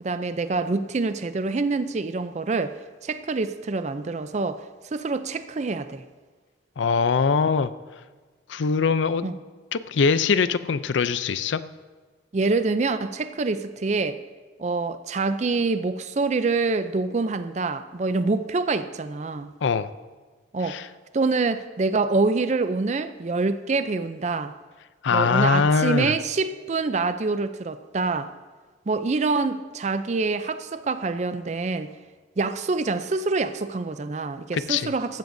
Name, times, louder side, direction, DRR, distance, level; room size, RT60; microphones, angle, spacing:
voice 1, 0.0-2.8 3.0-4.6 4.9-6.0 9.2-9.4 12.3-14.2 14.6-19.5 20.5-20.8 21.1-24.5 25.1-28.3 28.9-31.9 32.4-35.2, right 3 dB, 35° right, 12 dB, 0.4 m, -26 dB
voice 2, 6.8-7.7 8.5-9.3 9.7-11.6 19.6-19.9 20.6-20.9 25.0-26.1 34.5-34.9, left 5 dB, 70° left, 14 dB, 0.4 m, -22 dB
15.0 x 12.5 x 2.6 m, 1.3 s
head